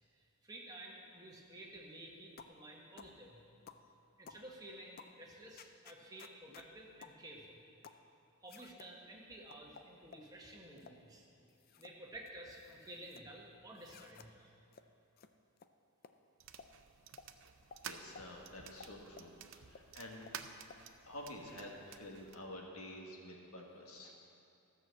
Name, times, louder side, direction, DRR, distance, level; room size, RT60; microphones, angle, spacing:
voice 1, 0.1-3.4 4.2-7.6 8.4-11.2 11.8-14.5, right 1 dB, 15° right, -2 dB, 1.3 m, -52 dB
sound 1, 2.4-2.6 3.0-3.2 3.7-3.9 4.3-4.5 5.0-5.2 5.6-6.7 7.0-7.2 7.8-8.0 8.5-8.9 9.5-10.3 10.8-11.0 11.5-12.0 12.3-13.2 13.8-14.3 14.7-14.8 15.2-15.3 15.6-15.7 16.0-16.1 16.6-16.7 17.2-17.3 17.7-17.8 18.2-18.3 18.8-19.3 19.7-19.8 20.3-20.4 20.7-20.8, left 5 dB, 40° left, 0.4 m, -56 dB
sound 2, 16.4-22.4, right 7 dB, 60° right, 0.5 m, -52 dB
voice 2, 17.8-20.5 21.0-24.1, left 1 dB, 80° left, 0 dB, 1.6 m, -49 dB
13.5 x 6.2 x 7.5 m, 2.6 s
head